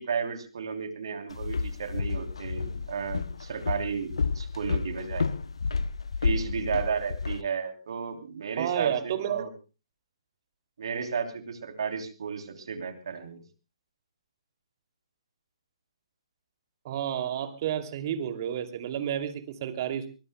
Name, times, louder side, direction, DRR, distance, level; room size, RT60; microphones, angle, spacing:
voice 1, 0.0-5.3 6.2-9.5 10.8-13.4, right 6 dB, 60° right, 8 dB, 3.2 m, -33 dB
Walk footsteps, 1.3-7.4, left 4 dB, 70° left, 0.7 m, -31 dB
voice 2, 8.6-9.4 16.8-20.1, right 10 dB, 40° right, 9 dB, 2.6 m, -31 dB
24.0 x 20.0 x 2.2 m, 0.33 s
figure-of-eight pair, 135°, 3 cm